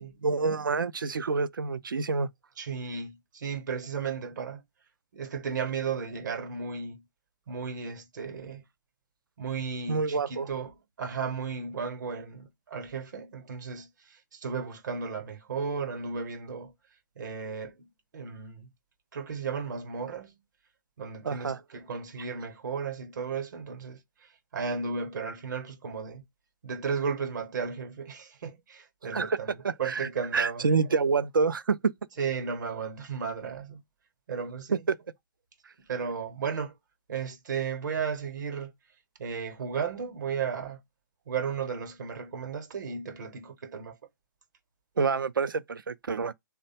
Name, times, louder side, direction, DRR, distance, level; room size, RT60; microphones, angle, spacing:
voice 1, 0.2-2.3 9.9-10.5 21.2-21.6 29.1-29.4 29.6-31.9 34.9-35.0 45.0-46.3, right 4 dB, 85° right, 0.4 m, -27 dB
voice 2, 2.6-4.6 5.1-7.1 7.5-8.6 9.4-16.7 17.2-18.7 19.1-20.4 21.0-26.2 26.6-30.7 32.2-33.8 34.3-34.8 35.8-36.7 37.1-38.7 39.2-40.8 41.3-44.0, right 6 dB, 65° right, 0.8 m, -34 dB
3.3 x 2.1 x 4.0 m
figure-of-eight pair, 125°, 11 cm